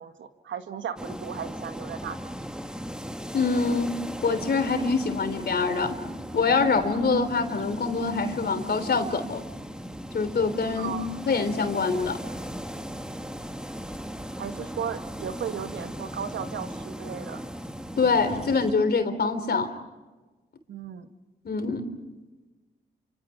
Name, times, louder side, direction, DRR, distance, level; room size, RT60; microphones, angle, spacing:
voice 1, 0.0-2.3 10.7-11.1 14.4-17.4 20.7-21.1, right 8 dB, 70° right, 8 dB, 1.7 m, -35 dB
sound 1, 1.0-18.7, equal, 5° right, 2.0 m, -37 dB
voice 2, 3.3-6.0 6.3-9.4 10.1-10.9 11.2-12.2 18.0-19.7 21.4-21.9, left 4 dB, 55° left, 8 dB, 3.4 m, -25 dB
28.5 x 26.0 x 5.8 m, 1.2 s
hypercardioid pair, 40°, 20 cm